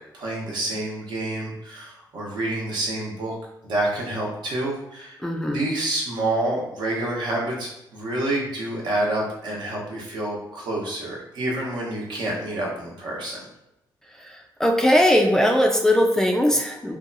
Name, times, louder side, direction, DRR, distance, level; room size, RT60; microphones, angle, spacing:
voice 1, 0.1-3.3 3.6-5.2 5.5-13.4, right 1 dB, 70° right, -3 dB, 0.9 m, -28 dB
voice 2, 5.2-5.6 14.6-17.0, left 1 dB, 5° left, 2 dB, 0.3 m, -19 dB
2.6 x 2.3 x 2.6 m, 0.86 s
cardioid pair, 90°, 8 cm